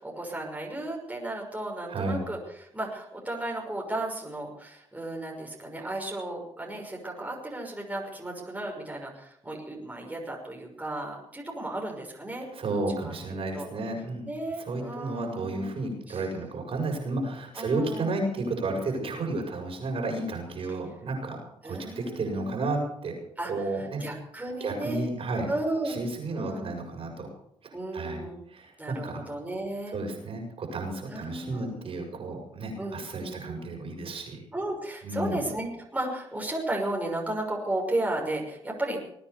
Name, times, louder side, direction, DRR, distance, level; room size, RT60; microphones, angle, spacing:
voice 1, 0.0-12.5 13.0-13.7 14.3-15.8 16.1-16.2 17.5-18.1 21.6-22.7 23.4-25.0 25.3-26.0 26.3-26.7 27.7-28.4 28.8-29.9 31.1-31.9 32.8-33.6 34.5-39.0, right 1 dB, 15° right, 0 dB, 6.0 m, -34 dB
voice 2, 1.9-2.2 12.5-14.3 14.7-21.4 21.6-23.1 23.5-24.0 24.6-25.5 25.8-27.3 27.6-28.2 28.5-29.2 29.9-34.4 35.0-35.5, right 2 dB, 55° right, 1 dB, 7.1 m, -32 dB
20.5 x 9.6 x 7.0 m, 0.71 s
supercardioid pair, 65°, 11 cm